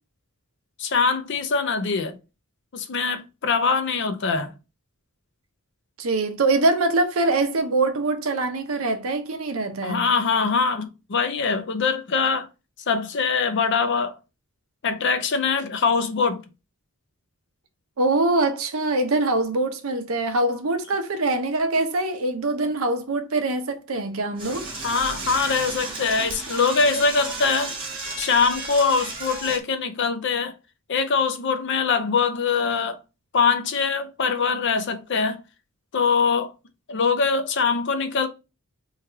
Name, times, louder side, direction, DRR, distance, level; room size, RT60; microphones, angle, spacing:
voice 1, 0.8-2.2 2.7-4.5 9.8-12.5 12.9-14.2 14.8-16.4 24.8-27.7 28.2-30.5 30.9-33.0 33.3-35.4 35.9-36.5 36.9-38.3, left 5 dB, 55° left, 0.5 m, -23 dB
voice 2, 6.0-10.0 18.0-24.7, right 2 dB, 70° right, 0.7 m, -23 dB
Door / Toilet flush, 24.4-29.6, right 3 dB, 25° right, 1.2 m, -33 dB
3.2 x 2.4 x 4.4 m
head